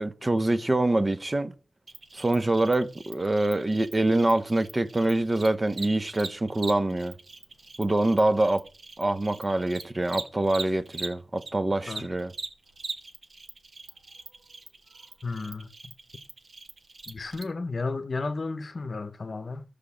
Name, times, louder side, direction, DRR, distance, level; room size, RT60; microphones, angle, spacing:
voice 1, 0.0-1.5 2.1-7.1 7.8-8.6 9.0-12.3, right 2 dB, 30° right, 0.7 m, -25 dB
Cricket, 1.9-11.5 11.8-17.4, right 4 dB, 65° right, 1.6 m, -41 dB
voice 2, 15.2-15.7 17.1-19.6, left 3 dB, 55° left, 0.7 m, -33 dB
13.0 x 5.0 x 7.1 m
wide cardioid pair, 100°, 0 cm